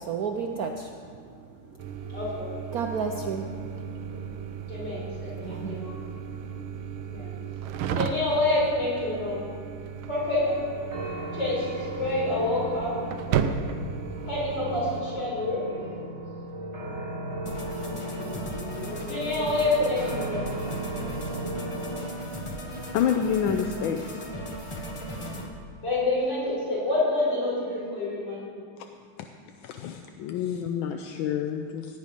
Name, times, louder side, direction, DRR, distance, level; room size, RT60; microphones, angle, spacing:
voice 1, 0.0-2.4 2.7-7.5, right 5 dB, 65° right, 4 dB, 0.9 m, -36 dB
sound 1, 1.8-15.0, right 8 dB, 85° right, 1.5 m, -35 dB
voice 2, 2.1-2.7 4.7-5.1 5.4-5.9 7.1-7.3 7.9-9.4 10.1-10.6 11.0-13.0 14.3-16.1 18.1-20.5 21.5-21.6 25.8-28.4, left 2 dB, 55° left, -6 dB, 5.2 m, -28 dB
sound 2, 2.8-22.1, right 1 dB, 40° right, 1.6 m, -38 dB
sound 3, 17.4-25.5, equal, 20° left, 0.8 m, -37 dB
voice 3, 22.9-24.2 29.6-32.0, left 8 dB, 80° left, 6 dB, 1.4 m, -28 dB
16.5 x 9.3 x 5.2 m, 2.1 s
omnidirectional pair, 2.2 m